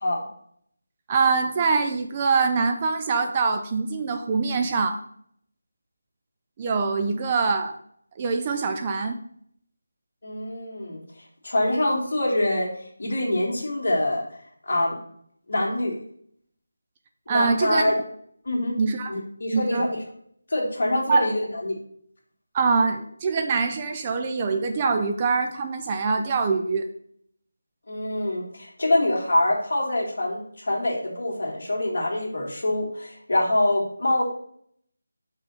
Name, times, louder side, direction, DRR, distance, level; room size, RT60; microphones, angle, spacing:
voice 1, 1.1-5.0 6.6-7.8 8.2-9.2 17.3-17.8 18.8-19.1 19.5-19.9 21.1-21.3 22.5-26.9, right 4 dB, 25° right, 5 dB, 0.5 m, -24 dB
voice 2, 10.2-11.0 11.4-12.7 13.0-14.2 14.6-15.0 15.5-16.0 17.3-17.9 18.5-18.8 19.1-20.0 20.5-21.8 27.9-34.2, left 1 dB, 60° left, -1 dB, 2.0 m, -25 dB
5.4 x 4.0 x 5.5 m, 0.66 s
figure-of-eight pair, 165°, 0 cm